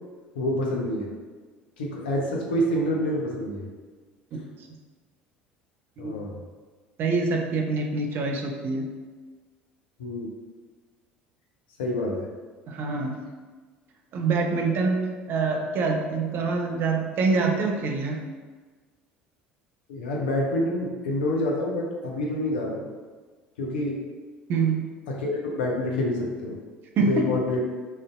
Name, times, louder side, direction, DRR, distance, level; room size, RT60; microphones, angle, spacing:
voice 1, 0.3-1.1 1.8-3.7 6.0-6.3 10.0-10.3 11.8-12.3 19.9-22.9 23.6-24.0 25.1-26.6 27.0-27.6, left 1 dB, 65° left, -1 dB, 0.5 m, -27 dB
voice 2, 6.0-6.3 7.0-8.9 12.7-13.2 14.1-18.2 24.5-24.8 27.0-27.3, right 4 dB, 40° right, 2 dB, 0.4 m, -25 dB
2.5 x 2.0 x 2.4 m, 1.4 s
figure-of-eight pair, 65°, 6 cm